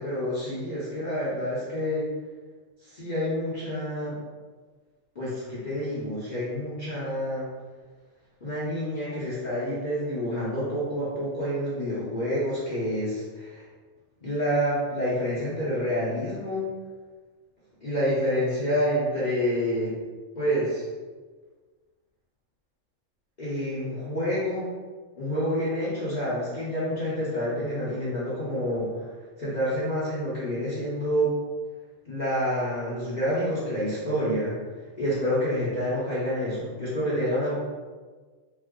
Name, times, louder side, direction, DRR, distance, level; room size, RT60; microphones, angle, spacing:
voice 1, 0.0-2.1 2.8-4.2 5.1-7.5 8.4-13.6 14.2-16.7 17.8-19.9 20.3-20.8 23.4-24.8 25.1-29.1 29.4-31.3 32.0-34.6 35.0-37.6, equal, 40° left, -11 dB, 0.8 m, -28 dB
3.3 x 2.0 x 3.6 m, 1.4 s
omnidirectional pair, 1.4 m